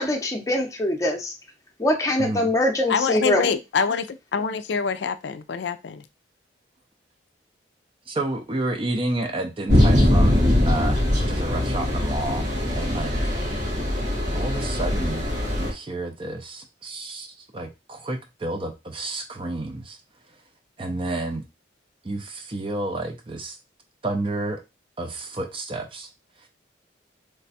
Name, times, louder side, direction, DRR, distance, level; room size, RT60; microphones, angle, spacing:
voice 1, 0.0-1.3 1.8-3.5, left 1 dB, 15° left, 0.7 m, -23 dB
voice 2, 2.2-2.5 8.1-13.3 14.3-15.3 15.6-17.3 17.5-20.0 20.8-21.4 22.0-23.6 24.0-24.6 25.0-26.1, right 2 dB, 30° right, 0.5 m, -30 dB
voice 3, 2.9-6.0, left 6 dB, 70° left, 0.4 m, -25 dB
sound 1, 9.7-15.7, left 1 dB, 70° right, 1.7 m, -21 dB
3.3 x 2.2 x 4.1 m
head